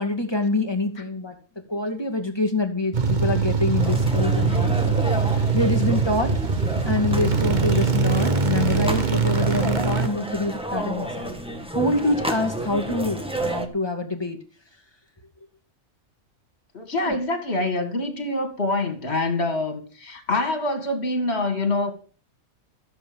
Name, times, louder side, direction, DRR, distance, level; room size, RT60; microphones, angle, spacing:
voice 1, 0.0-1.4 1.7-6.4 6.8-11.4 11.7-14.4 17.1-17.2, left 2 dB, 20° left, 3 dB, 2.3 m, -26 dB
sound 1, 2.9-10.1, right 4 dB, 35° right, 1.3 m, -22 dB
sound 2, 3.8-13.7, right 1 dB, 5° right, 1.9 m, -31 dB
voice 2, 16.7-21.9, left 2 dB, 50° left, 6 dB, 3.0 m, -25 dB
14.5 x 8.1 x 7.1 m, 0.38 s
omnidirectional pair, 1.4 m